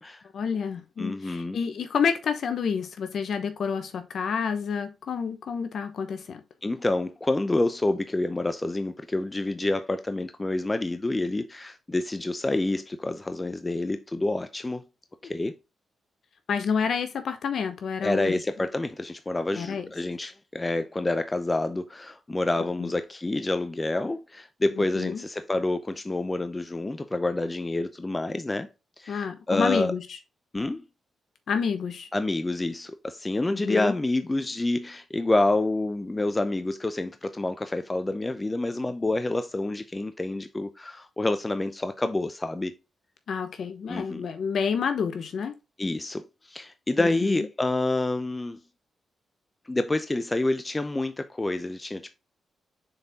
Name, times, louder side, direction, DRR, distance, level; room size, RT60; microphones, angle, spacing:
voice 1, 0.3-6.4 16.5-18.4 19.5-19.8 22.8-22.9 24.8-25.2 29.1-30.2 31.5-32.1 33.5-33.9 43.3-45.5 47.0-47.4, left 6 dB, 70° left, 0.9 m, -29 dB
voice 2, 1.0-1.6 6.6-14.8 15.2-15.6 18.0-28.7 29.0-29.9 30.5-30.8 32.1-42.7 43.9-44.3 45.8-48.6 49.7-52.1, left 2 dB, 20° left, 0.6 m, -28 dB
6.6 x 4.4 x 3.5 m
cardioid pair, 75°, 0 cm